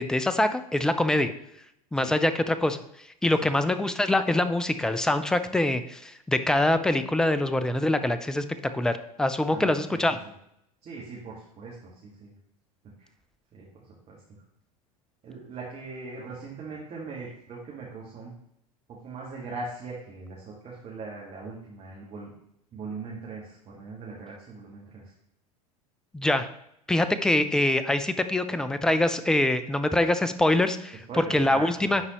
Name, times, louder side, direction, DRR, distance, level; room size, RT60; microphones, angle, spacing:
voice 1, 0.0-1.3 1.9-2.8 3.2-10.2 26.1-26.5 26.9-32.0, left 1 dB, 5° left, 11 dB, 0.4 m, -24 dB
voice 2, 9.5-10.0 10.2-10.3 10.8-12.3 13.0-13.1 13.5-14.2 15.2-18.3 18.9-22.3 22.7-25.1 31.1-31.7, right 4 dB, 35° right, -4 dB, 1.6 m, -40 dB
10.5 x 4.0 x 3.0 m, 0.76 s
figure-of-eight pair, 80°, 20 cm